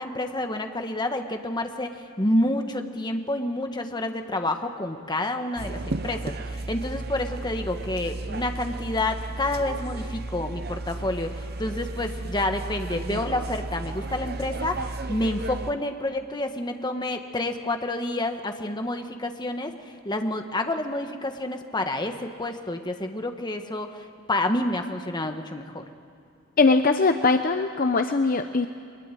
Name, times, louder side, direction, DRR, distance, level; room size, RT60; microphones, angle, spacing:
voice 1, 0.0-19.7 20.0-25.8, left 1 dB, 20° left, 6 dB, 1.3 m, -29 dB
sound 1, 5.6-15.7, right 2 dB, 50° right, 0.8 m, -34 dB
voice 2, 26.6-28.7, left 3 dB, 40° left, 8 dB, 0.7 m, -21 dB
23.0 x 21.0 x 9.2 m, 2.5 s
head